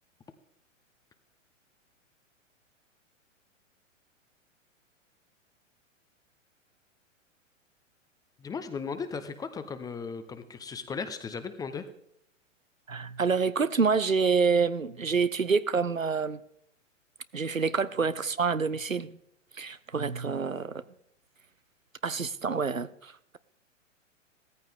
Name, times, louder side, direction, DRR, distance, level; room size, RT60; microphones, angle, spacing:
voice 1, 8.4-11.8, left 5 dB, 10° left, 0.7 m, -36 dB
voice 2, 12.9-16.4 17.3-19.2 19.5-20.8 22.0-23.4, right 5 dB, 90° right, 0.8 m, -27 dB
17.0 x 14.0 x 3.6 m
figure-of-eight pair, 105°, 39 cm